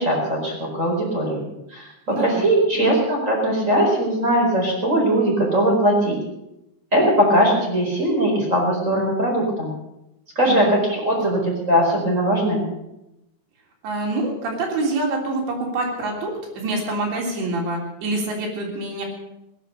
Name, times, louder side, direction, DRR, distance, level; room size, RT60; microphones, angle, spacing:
voice 1, 0.0-1.5 1.7-6.2 6.9-9.7 10.3-12.6, right 1 dB, 15° right, -2 dB, 4.4 m, -20 dB
voice 2, 2.1-2.5 2.7-2.9 10.5-10.8 11.2-11.3 13.8-19.0, right 2 dB, 80° right, 0 dB, 5.6 m, -26 dB
19.5 x 11.0 x 6.7 m, 0.90 s
omnidirectional pair, 5.0 m